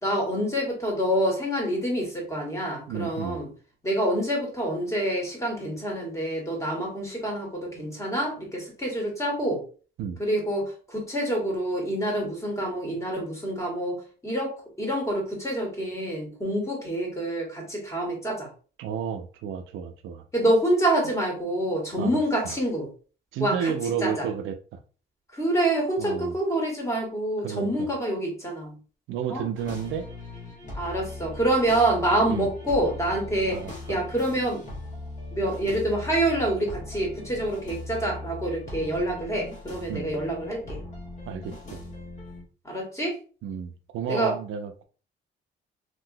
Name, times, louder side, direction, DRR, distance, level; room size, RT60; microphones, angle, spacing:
voice 1, 0.0-3.5 3.8-9.6 10.2-18.5 20.3-22.9 23.4-23.7 24.0-24.2 25.3-28.7 29.3-29.4 30.7-33.6 33.9-34.6 35.3-40.8 42.6-43.1 44.1-44.3, right 1 dB, 15° left, -1 dB, 1.6 m, -27 dB
voice 2, 2.9-3.4 10.0-10.2 18.8-20.3 22.0-22.1 22.4-22.6 23.3-24.6 26.0-26.4 27.4-27.7 29.1-30.1 32.3-32.5 33.5-33.7 39.9-40.1 41.3-41.8 43.4-44.8, right 7 dB, 80° right, 8 dB, 0.4 m, -31 dB
sound 1, 29.5-42.4, left 2 dB, 40° left, 1.3 m, -39 dB
3.0 x 2.8 x 2.6 m, 0.38 s
cardioid pair, 90°, 20 cm